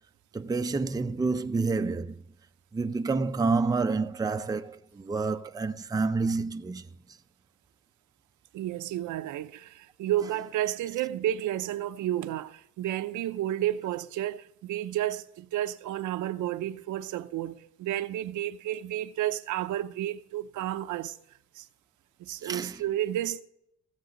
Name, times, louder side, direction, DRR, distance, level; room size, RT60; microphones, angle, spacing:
voice 1, 0.3-2.2 2.7-6.9 22.4-22.8, right 4 dB, 15° right, 0.5 m, -28 dB
voice 2, 8.5-21.2 21.6-21.7 22.2-23.4, right 12 dB, 80° right, 0.7 m, -31 dB
16.0 x 7.3 x 3.9 m
cardioid pair, 90°, 30 cm